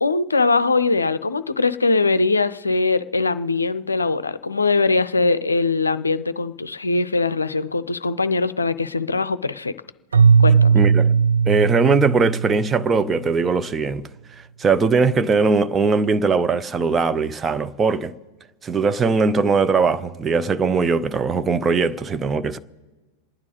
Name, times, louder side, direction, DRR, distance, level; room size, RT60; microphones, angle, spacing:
voice 1, 0.0-9.7 10.4-10.8, left 3 dB, 80° left, 0.5 m, -21 dB
Keyboard (musical), 10.1-13.2, right 6 dB, 70° right, 0.4 m, -17 dB
voice 2, 10.7-11.1 11.5-14.0 14.6-18.1 18.6-22.6, right 4 dB, 20° right, 0.6 m, -20 dB
28.0 x 9.6 x 4.0 m
figure-of-eight pair, 90°, 0 cm